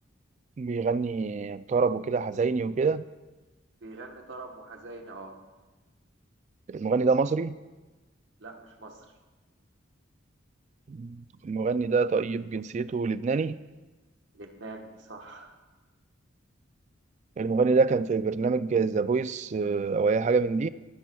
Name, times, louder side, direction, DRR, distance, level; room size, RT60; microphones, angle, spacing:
voice 1, 0.6-3.0 6.7-7.6 10.9-13.6 17.4-20.7, right 4 dB, 35° right, 0.3 m, -26 dB
voice 2, 3.8-5.4 8.4-9.1 14.3-15.6, right 3 dB, 70° right, 1.3 m, -44 dB
21.5 x 10.0 x 2.3 m
head